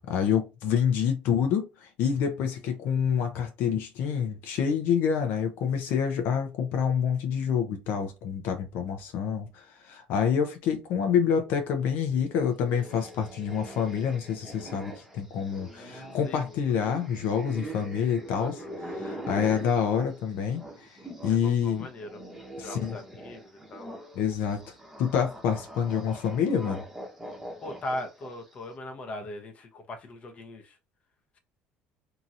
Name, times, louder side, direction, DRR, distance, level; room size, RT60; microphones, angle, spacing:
voice 1, 0.0-20.6 21.2-21.9 22.6-23.0 24.1-24.6 25.0-26.8, left 7 dB, 70° left, 0.6 m, -27 dB
sound 1, 12.7-21.4 21.7-28.5, right 1 dB, 10° right, 0.9 m, -43 dB
voice 2, 18.4-18.7 21.3-22.2 22.6-23.9 27.6-30.8, left 1 dB, 35° left, 0.7 m, -39 dB
2.9 x 2.7 x 2.5 m
cardioid pair, 115°, 4 cm